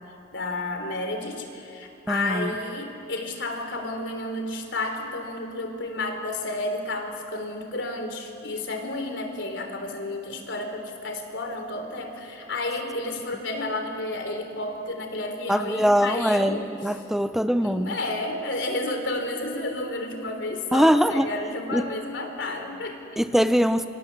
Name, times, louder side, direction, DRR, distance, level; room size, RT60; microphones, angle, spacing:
voice 1, 0.3-16.7 17.6-23.0, left 2 dB, 70° left, 5 dB, 3.6 m, -31 dB
voice 2, 2.1-2.5 15.5-18.0 20.7-21.3 21.7-21.9 23.2-23.9, equal, ahead, 10 dB, 0.6 m, -22 dB
26.5 x 26.0 x 7.5 m, 2.8 s
head